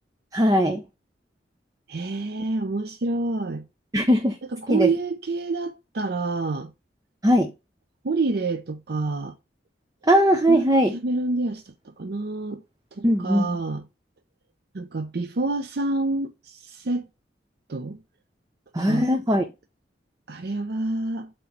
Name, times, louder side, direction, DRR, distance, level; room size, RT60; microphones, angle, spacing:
voice 1, 0.3-0.8 3.9-4.4 4.7-4.9 7.2-7.5 10.0-10.9 13.0-13.6 18.7-19.5, equal, 20° right, 0.8 m, -19 dB
voice 2, 1.9-3.6 4.5-6.7 8.0-9.3 10.5-10.7 10.9-12.6 12.9-13.8 14.7-17.1 17.7-18.0 18.9-19.1 20.3-21.3, right 3 dB, 60° right, 0.6 m, -28 dB
8.0 x 3.2 x 5.8 m
head